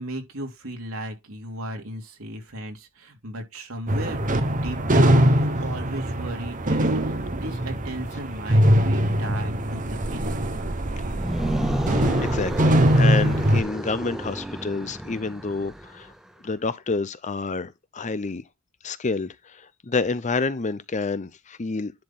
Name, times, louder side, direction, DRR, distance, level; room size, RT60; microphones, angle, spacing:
voice 1, 0.0-10.4, right 1 dB, 75° right, 2.8 m, -36 dB
sound 1, 3.9-13.6, right 1 dB, 40° right, 1.2 m, -22 dB
sound 2, 11.1-16.1, equal, ahead, 0.8 m, -31 dB
voice 2, 11.9-16.1 16.4-18.4 18.8-21.9, left 3 dB, 35° left, 0.6 m, -28 dB
10.5 x 4.4 x 3.8 m
head